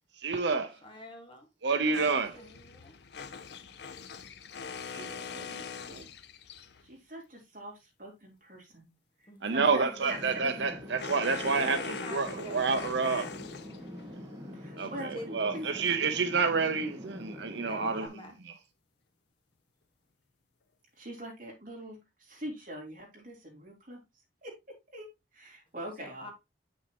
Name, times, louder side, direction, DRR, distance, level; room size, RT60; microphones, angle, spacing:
voice 1, 0.2-0.8 1.6-2.4 4.9-6.1 9.4-13.3 14.8-18.1, right 4 dB, 75° right, 0.8 m, -29 dB
voice 2, 0.8-1.5 2.3-2.9 9.3-10.2 11.5-12.7 14.7-15.3 17.6-18.3 26.0-26.3, left 1 dB, 30° left, 1.8 m, -47 dB
voice 3, 1.8-2.5 6.8-8.9 9.2-10.7 14.5-15.7 21.0-24.0 24.4-26.3, equal, 45° right, 3.4 m, -44 dB
sound 1, 1.9-6.9 9.9-14.1, left 5 dB, 65° left, 0.6 m, -42 dB
sound 2, 10.1-18.1, left 1 dB, 20° right, 1.9 m, -45 dB
8.2 x 6.3 x 3.0 m
head